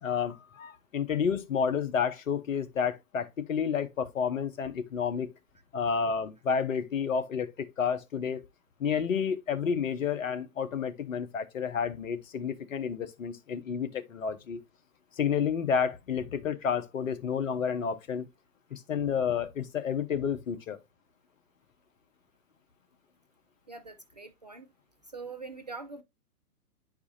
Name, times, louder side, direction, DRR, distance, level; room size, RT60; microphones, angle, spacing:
voice 1, 0.0-5.3 5.7-8.4 8.8-14.6 15.2-18.3 18.7-20.8, left 7 dB, 60° left, 1.0 m, -30 dB
voice 2, 23.7-24.7 25.1-26.0, right 4 dB, 30° right, 0.4 m, -43 dB
9.5 x 4.8 x 2.6 m
figure-of-eight pair, 120°, 46 cm